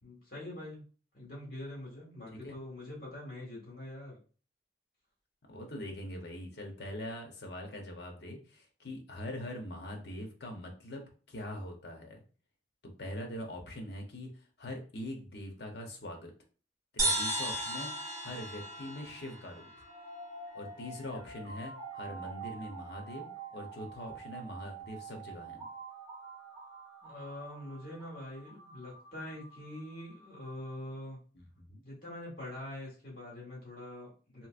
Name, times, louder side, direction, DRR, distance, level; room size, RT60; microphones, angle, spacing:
voice 1, 0.0-0.8 1.1-4.2 27.0-31.2 31.8-34.5, left 1 dB, 55° left, -4 dB, 1.7 m, -44 dB
voice 2, 5.5-12.2 12.8-14.3 14.6-16.3 16.9-19.7 20.5-25.6 31.3-31.8, left 1 dB, 70° left, 2 dB, 0.8 m, -43 dB
sound 1, 17.0-20.5, right 1 dB, 20° right, 1.6 m, -35 dB
sound 2, 19.8-30.8, right 4 dB, 65° right, 1.2 m, -47 dB
3.0 x 3.0 x 2.4 m, 0.38 s
head